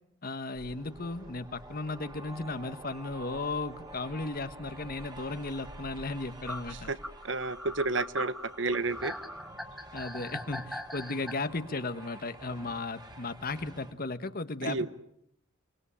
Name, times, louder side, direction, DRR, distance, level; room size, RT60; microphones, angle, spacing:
voice 1, 0.2-6.9 9.9-14.9, left 3 dB, 50° left, 11 dB, 1.2 m, -35 dB
sound 1, 0.5-13.9, right 1 dB, 20° right, 2.7 m, -48 dB
sound 2, 4.1-4.2 5.7-5.8 6.5-11.3, equal, ahead, 1.2 m, -40 dB
voice 2, 7.2-9.1 14.6-14.9, right 3 dB, 70° right, 14 dB, 1.2 m, -31 dB
28.5 x 19.5 x 10.0 m, 0.76 s
head